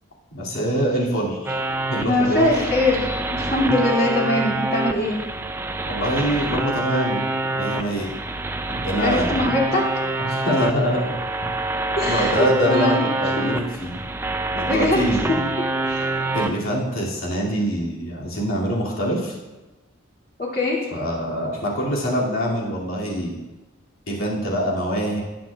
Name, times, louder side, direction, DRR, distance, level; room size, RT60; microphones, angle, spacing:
voice 1, 0.3-1.5 1.9-2.4 5.9-7.2 7.5-8.1 8.7-9.5 10.2-11.5 12.1-14.0 14.5-15.5 16.3-19.4 20.9-23.4 24.1-25.2, equal, 80° left, -4 dB, 2.5 m, -24 dB
sound 1, 1.5-16.5, right 2 dB, 10° right, 0.4 m, -26 dB
voice 2, 2.1-5.2 8.9-9.8 10.3-10.4 12.0-13.5 14.6-15.4 15.8-16.1 20.4-20.9, left 2 dB, 45° left, -4 dB, 2.5 m, -22 dB
19.0 x 7.8 x 2.4 m, 1.1 s
head